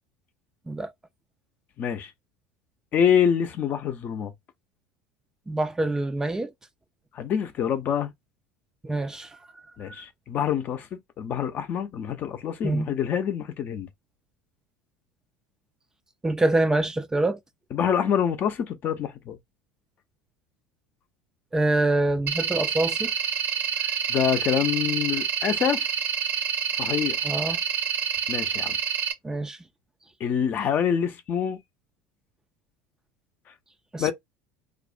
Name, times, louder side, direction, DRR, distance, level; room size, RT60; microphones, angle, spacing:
voice 1, 1.8-2.1 2.9-4.3 7.1-8.1 9.8-13.9 17.7-19.4 24.1-25.9 26.8-27.2 28.3-28.8 30.2-31.6 34.0-34.1, left 8 dB, 45° left, 0.5 m, -26 dB
voice 2, 5.5-6.5 8.8-9.4 12.6-12.9 16.2-17.4 21.5-23.1 23.8-23.9 27.2-27.6 29.2-29.6 33.9-34.1, right 2 dB, 15° right, 0.3 m, -25 dB
sound 1, 22.3-29.1, right 7 dB, 50° right, 0.6 m, -27 dB
2.5 x 2.0 x 2.5 m
hypercardioid pair, 85°, 4 cm